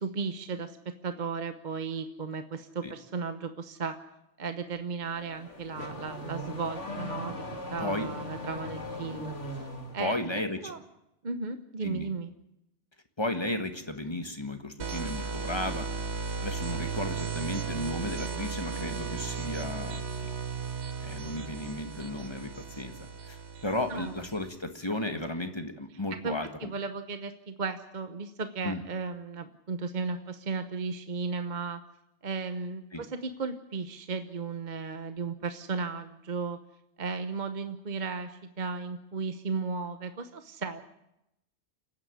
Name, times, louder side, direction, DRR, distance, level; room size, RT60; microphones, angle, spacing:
voice 1, 0.0-4.0 4.4-7.4 7.7-9.7 9.9-10.8 11.2-12.3 23.9-24.2 26.2-31.8 32.2-36.6 37.0-40.9, right 4 dB, 40° right, 9 dB, 1.1 m, -35 dB
Car / Accelerating revving vroom, 5.0-10.1, left 1 dB, 80° left, 2.8 m, -39 dB
voice 2, 7.8-8.1 10.0-10.7 11.8-12.1 13.2-15.9 16.4-20.3 21.0-22.9 23.3-26.5 28.6-28.8 32.9-33.0, left 1 dB, 25° left, 7 dB, 1.6 m, -34 dB
sound 1, 14.8-24.5, right 5 dB, 70° right, 1.4 m, -35 dB
29.0 x 9.8 x 9.7 m, 0.86 s
omnidirectional pair, 1.2 m